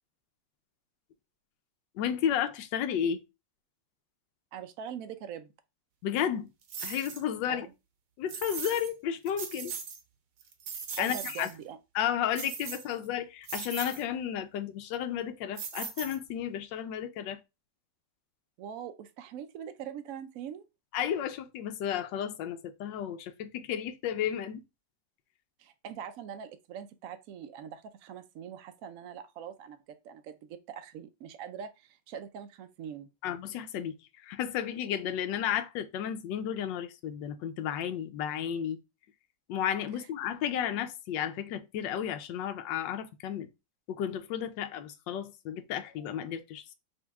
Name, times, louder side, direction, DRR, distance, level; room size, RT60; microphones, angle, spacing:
voice 1, 2.0-3.2 6.0-6.5 6.8-7.7 8.2-9.7 11.0-11.5 11.9-17.4 20.9-24.6 33.2-34.0 34.2-38.8 39.5-43.5 43.9-46.7, left 9 dB, 75° left, 1.3 m, -33 dB
voice 2, 4.5-5.5 7.5-7.7 11.0-11.8 18.6-20.7 25.6-33.1 40.0-40.1, right 8 dB, 80° right, 0.7 m, -43 dB
sound 1, 6.7-7.2 8.3-8.9 9.3-10.0 10.4-11.5 12.3-13.1 13.4-14.0 15.6-16.4, right 6 dB, 60° right, 1.0 m, -39 dB
5.2 x 2.8 x 3.4 m
omnidirectional pair, 2.0 m